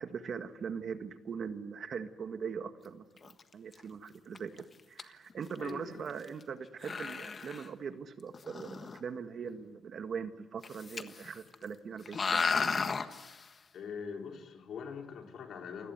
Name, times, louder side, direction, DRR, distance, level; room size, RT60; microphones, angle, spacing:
voice 1, 0.0-12.6, right 6 dB, 55° right, 9 dB, 1.7 m, -41 dB
sound 1, 3.2-3.4 3.7-3.8 4.3-4.6 5.0-5.1 5.3-5.4 5.6-5.7 6.2-6.4 6.8-7.7 8.3-9.0 10.6-11.3 11.5-11.6 12.1-13.4, left 5 dB, 40° left, 1.5 m, -34 dB
voice 2, 5.6-6.1 13.7-15.9, left 6 dB, 65° left, 3 dB, 3.9 m, -43 dB
29.0 x 18.0 x 9.5 m, 1.2 s
cardioid pair, 90°, 0 cm